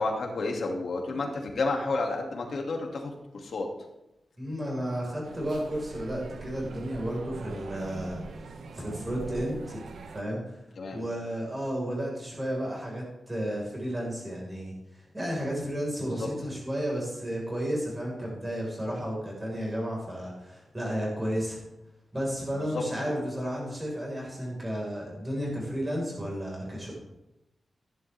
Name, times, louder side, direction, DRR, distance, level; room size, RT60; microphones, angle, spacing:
voice 1, 0.0-3.7 10.8-11.0 16.2-16.3 22.6-23.3, left 3 dB, 70° left, 2 dB, 2.3 m, -31 dB
voice 2, 4.4-9.9 10.1-10.6 10.9-21.6 22.1-26.9, equal, 15° right, -3 dB, 4.6 m, -33 dB
sound 1, 5.2-10.2, right 4 dB, 85° right, 0.9 m, -42 dB
15.5 x 10.5 x 3.4 m, 0.90 s
wide cardioid pair, 155°, 0 cm